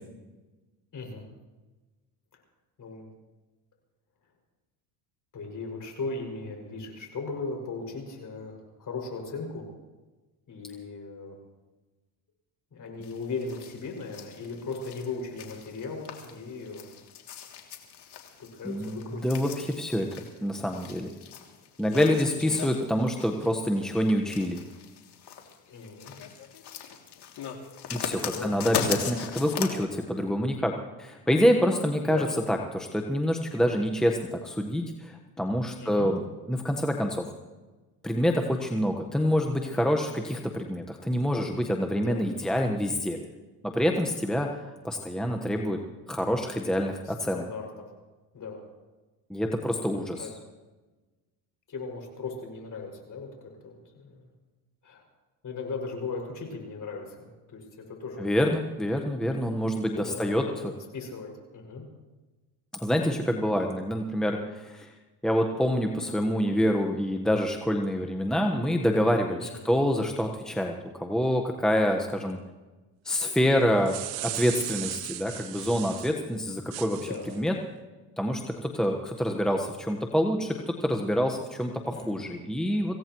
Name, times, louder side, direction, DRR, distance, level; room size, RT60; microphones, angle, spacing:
voice 1, 0.9-1.2 2.3-2.4 2.8-3.1 5.3-9.7 10.5-11.4 12.7-16.9 18.4-19.4 25.7-26.2 28.3-28.6 32.0-32.4 35.8-36.1 41.9-42.3 47.0-47.8 48.3-48.6 49.8-50.3 51.7-54.3 54.8-55.0 55.4-58.3 59.2-59.3 59.9-60.7 60.9-61.8 69.4-69.8 73.6-73.8 77.0-77.4 81.9-82.4, left 4 dB, 40° left, 2 dB, 6.3 m, -38 dB
sound 1, 13.0-29.8, left 8 dB, 60° left, 2.8 m, -38 dB
voice 2, 18.6-20.1 20.4-21.1 21.8-24.6 27.9-36.2 36.5-37.3 38.0-43.2 43.6-44.6 44.8-45.8 46.1-47.4 49.3-50.3 58.2-60.7 62.7-64.9 65.2-72.4 73.0-74.0 74.2-77.0 77.3-77.5 78.2-83.0, equal, ahead, 2 dB, 1.3 m, -26 dB
sound 2, 73.6-76.2 76.7-77.4, right 16 dB, 75° right, 0.8 m, -36 dB
25.5 x 16.5 x 3.1 m, 1.2 s
supercardioid pair, 90°, 46 cm